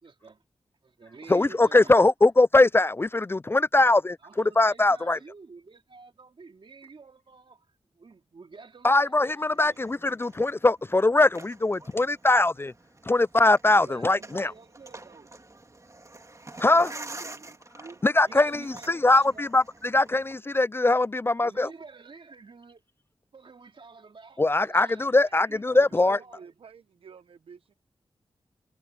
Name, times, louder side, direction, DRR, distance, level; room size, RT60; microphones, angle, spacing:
voice 1, 0.0-0.4 0.8-2.0 4.2-7.6 7.9-9.8 13.7-15.3 16.5-19.5 21.4-22.8 23.3-26.5, right 4 dB, 65° right, 3.1 m, -49 dB
voice 2, 1.3-5.2 8.8-12.7 13.1-14.5 16.6-16.9 18.0-21.7 24.4-26.2, left 2 dB, 25° left, 0.3 m, -22 dB
sound 1, 9.5-20.4, right 2 dB, 35° right, 2.8 m, -47 dB
voice 3, 25.7-27.7, right 7 dB, 85° right, 0.8 m, -46 dB
cardioid pair, 45°, 9 cm